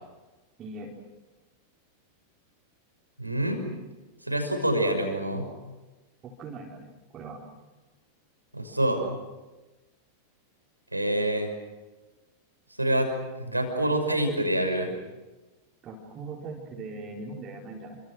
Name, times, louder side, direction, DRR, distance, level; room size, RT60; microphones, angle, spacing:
voice 1, 0.6-0.9 6.2-6.9 7.1-7.4 15.8-18.0, right 3 dB, 30° right, -4 dB, 4.7 m, -40 dB
voice 2, 3.2-3.7 4.2-5.5 8.5-9.0 10.9-11.5 12.8-14.9, right 1 dB, 85° right, 5 dB, 6.1 m, -26 dB
30.0 x 26.0 x 6.5 m, 1.2 s
figure-of-eight pair, 90°, 0 cm